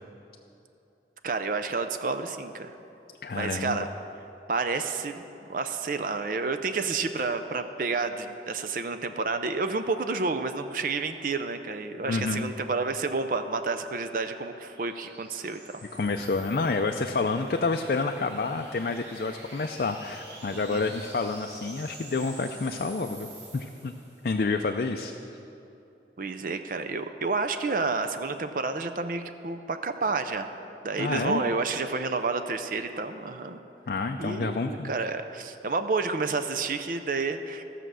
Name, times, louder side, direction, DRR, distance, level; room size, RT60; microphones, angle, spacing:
voice 1, 1.2-2.7 3.3-3.9 4.5-5.2 5.5-15.6 20.5-20.8 26.2-30.5 30.8-33.6 34.2-37.6, right 4 dB, 50° right, 8 dB, 0.5 m, -30 dB
voice 2, 3.2-3.8 12.1-12.4 15.9-23.3 23.5-23.9 24.2-25.1 31.0-31.4 33.9-34.9, left 3 dB, 55° left, 5 dB, 0.4 m, -29 dB
sound 1, 12.4-24.4, right 2 dB, 85° right, 2.1 m, -49 dB
15.0 x 6.6 x 6.2 m, 2.8 s
head